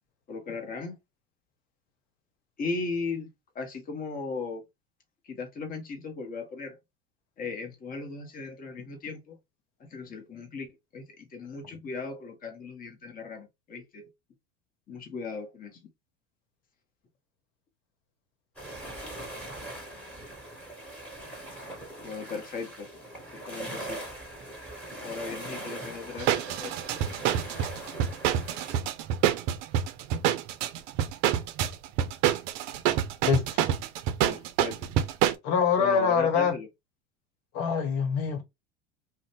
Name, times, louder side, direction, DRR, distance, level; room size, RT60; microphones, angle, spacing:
voice 1, 0.3-1.0 2.6-4.6 5.3-6.8 7.4-9.4 9.8-10.7 10.9-14.1 14.9-15.9 22.0-22.9 23.5-24.0 25.0-27.1 34.3-34.9 35.8-36.7, left 4 dB, 25° left, 0.8 m, -37 dB
sound 1, 18.6-28.8, right 1 dB, 5° left, 1.5 m, -41 dB
sound 2, 26.2-35.3, right 10 dB, 50° right, 0.5 m, -27 dB
voice 2, 33.2-33.6 35.4-36.5 37.5-38.4, left 6 dB, 55° left, 1.0 m, -25 dB
2.5 x 2.1 x 3.2 m
hypercardioid pair, 85°, 36 cm